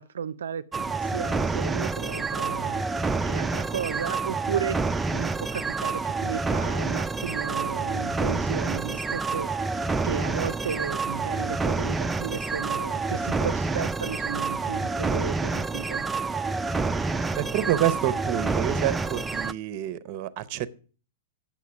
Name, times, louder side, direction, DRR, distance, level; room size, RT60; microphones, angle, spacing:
voice 1, 0.0-4.8 5.1-9.5 10.0-16.0, right 8 dB, 80° right, 0.4 m, -34 dB
sound 1, 0.7-19.5, right 3 dB, 10° right, 0.3 m, -28 dB
voice 2, 17.4-20.7, right 12 dB, 45° right, 0.8 m, -28 dB
8.3 x 7.2 x 6.1 m
hypercardioid pair, 120°, 0 cm